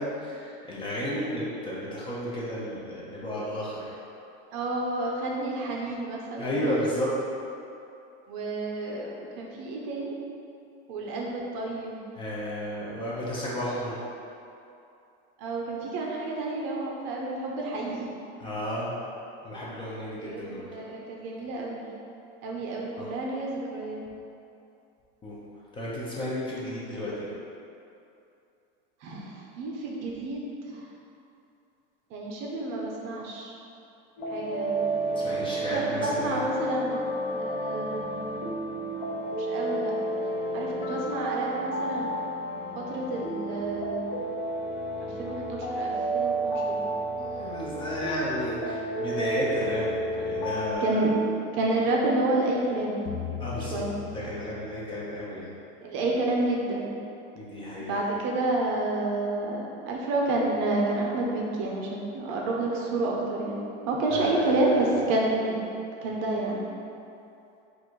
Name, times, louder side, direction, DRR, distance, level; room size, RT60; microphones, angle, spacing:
voice 1, 0.0-4.0 6.4-7.1 12.1-14.0 18.4-19.0 19.4-20.8 23.0-23.1 25.2-25.4 25.7-27.3 35.1-36.4 47.2-51.0 53.4-55.5 57.3-58.0 64.1-65.0, equal, 15° left, -7 dB, 0.5 m, -33 dB
voice 2, 4.5-6.7 8.3-10.2 10.9-12.0 15.4-18.1 20.2-21.9 22.4-24.0 29.0-30.4 30.7-30.8 32.1-33.5 34.3-35.0 35.7-37.0 37.4-38.4 38.9-39.9 40.5-42.1 42.7-44.2 45.0-46.9 50.8-51.1 51.5-53.3 53.7-53.9 55.8-56.9 57.8-63.6 63.9-65.6 66.0-66.6, right 2 dB, 45° right, -2 dB, 0.6 m, -29 dB
sound 1, 34.2-50.7, right 1 dB, 40° left, 0.8 m, -31 dB
sound 2, 53.1-55.3, left 8 dB, 75° left, 0.5 m, -38 dB
3.8 x 2.5 x 4.5 m, 2.7 s
supercardioid pair, 155°, 29 cm